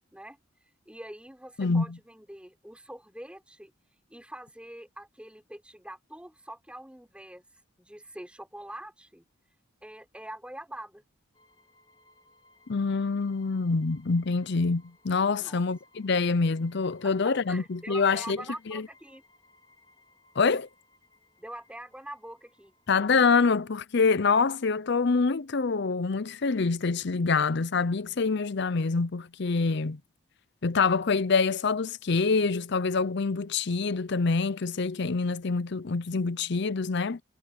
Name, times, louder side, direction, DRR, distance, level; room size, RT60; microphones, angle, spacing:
voice 1, 0.9-3.7 4.1-7.5 7.8-9.2 9.8-11.0 15.4-15.6 17.5-19.2 21.4-22.7, right 1 dB, 5° right, 3.9 m, -44 dB
voice 2, 1.6-2.0 12.7-18.4 18.7-18.9 20.4-20.7 22.9-30.0 30.6-37.2, left 4 dB, 55° left, 0.6 m, -26 dB
sound 1, 11.3-23.8, left 2 dB, 20° left, 3.8 m, -63 dB
head